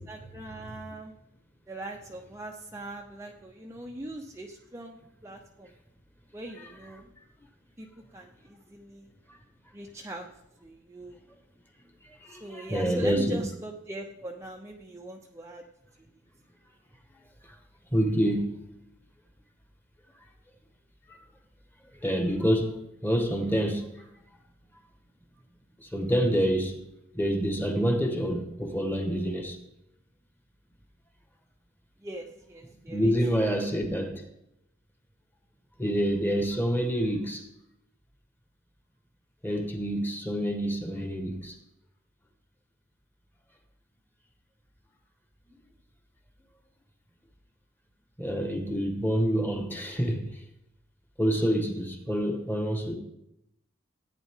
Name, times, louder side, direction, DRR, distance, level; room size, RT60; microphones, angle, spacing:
voice 1, 0.1-1.1 1.7-5.0 5.2-5.7 6.3-7.0 7.8-7.9 8.1-9.1 9.7-10.3 10.6-11.2 12.3-15.6 32.0-33.1, right 1 dB, 15° right, 0.6 m, -40 dB
voice 2, 12.0-13.4 17.9-18.6 21.1-21.2 21.9-23.9 25.8-26.8 27.1-29.6 32.9-34.2 35.8-37.5 39.4-41.6 48.2-50.4 51.2-52.9, equal, 10° left, 1.3 m, -27 dB
15.0 x 9.1 x 3.6 m
head